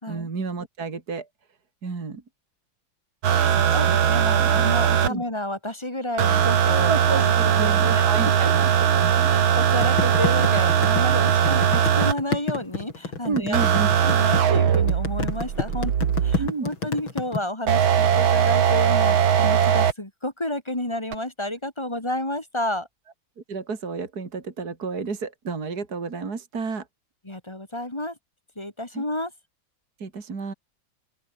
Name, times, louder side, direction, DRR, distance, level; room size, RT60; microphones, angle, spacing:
voice 1, 0.1-1.3 1.8-2.2 3.5-4.1 4.4-4.7 5.1-5.2 6.9-8.7 9.0-9.3 13.2-13.9 16.4-16.7 23.5-26.9 28.9-29.0 30.0-30.5, right 4 dB, 50° right, 3.4 m, -31 dB
sound 1, 3.2-5.1 6.2-12.1 13.5-16.5 17.7-19.9 21.1-21.2, right 8 dB, 85° right, 2.4 m, -20 dB
voice 2, 3.4-8.1 8.4-8.5 9.2-13.6 14.0-15.9 16.2-22.9 27.2-28.2 28.6-29.3, left 1 dB, 15° left, 2.4 m, -31 dB
sound 2, 9.8-17.4, left 4 dB, 90° left, 5.1 m, -28 dB
open air
omnidirectional pair, 2.1 m